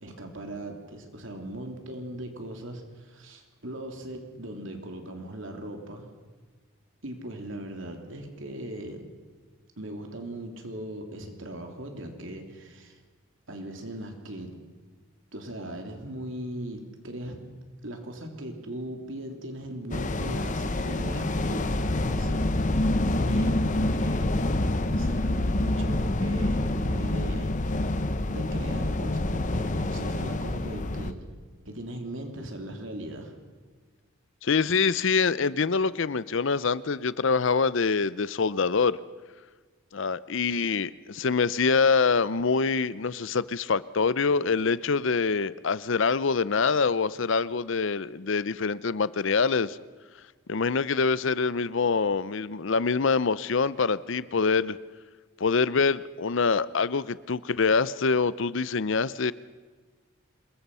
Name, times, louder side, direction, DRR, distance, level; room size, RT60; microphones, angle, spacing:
voice 1, 0.0-6.1 7.0-9.1 9.8-13.0 13.5-14.5 15.3-17.4 17.8-24.5 24.8-28.0 28.3-31.2 31.6-33.3, right 1 dB, 60° right, 4 dB, 3.4 m, -39 dB
sound 1, 19.9-31.1, left 1 dB, 35° left, 1.0 m, -27 dB
voice 2, 34.4-39.0 39.9-49.8 50.5-54.8 55.4-59.3, left 5 dB, 60° left, 18 dB, 0.6 m, -25 dB
26.5 x 21.5 x 5.6 m, 1.4 s
head